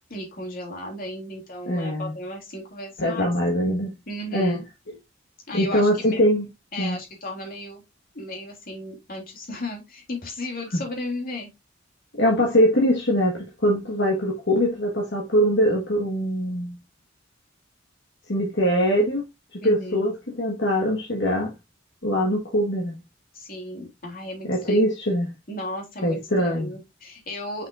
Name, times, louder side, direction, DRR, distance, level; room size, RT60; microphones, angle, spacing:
voice 1, 0.1-3.3 4.1-4.6 5.5-6.2 6.7-7.8 8.1-11.5 19.6-20.2 23.3-24.9 25.5-27.7, left 1 dB, 45° left, 3.2 m, -35 dB
voice 2, 1.7-2.2 3.0-3.9 4.3-4.6 5.5-6.5 6.8-7.0 10.7-10.8 12.1-16.7 18.3-19.2 19.5-21.5 22.0-23.0 24.4-25.3 26.0-26.7, equal, 60° left, 1.6 m, -22 dB
6.1 x 5.9 x 2.6 m
head